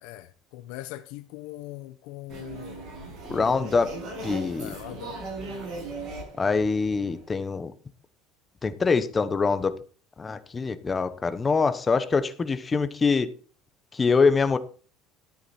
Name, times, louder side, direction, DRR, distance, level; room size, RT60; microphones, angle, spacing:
voice 1, 0.0-2.9 3.3-3.9 4.6-5.2, left 15 dB, 75° left, 0.8 m, -41 dB
sound 1, 2.3-7.5, right 3 dB, 50° right, 6.9 m, -38 dB
voice 2, 3.3-3.9 4.2-4.7 6.4-7.7 8.6-9.8 10.2-13.3 13.9-14.6, left 4 dB, 20° left, 1.0 m, -24 dB
13.0 x 8.8 x 4.3 m
cardioid pair, 150°, 0 cm